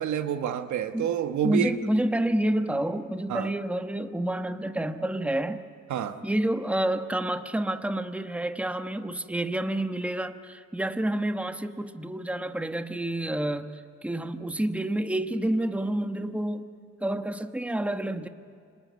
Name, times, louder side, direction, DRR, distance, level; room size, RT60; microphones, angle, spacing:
voice 1, 0.0-1.7 3.3-3.5 5.9-6.2, right 9 dB, 70° right, 8 dB, 1.4 m, -28 dB
voice 2, 1.4-5.6 6.2-16.7 17.0-18.3, right 1 dB, 5° right, 8 dB, 1.2 m, -29 dB
26.0 x 20.5 x 9.5 m, 2.2 s
cardioid pair, 90°, 30 cm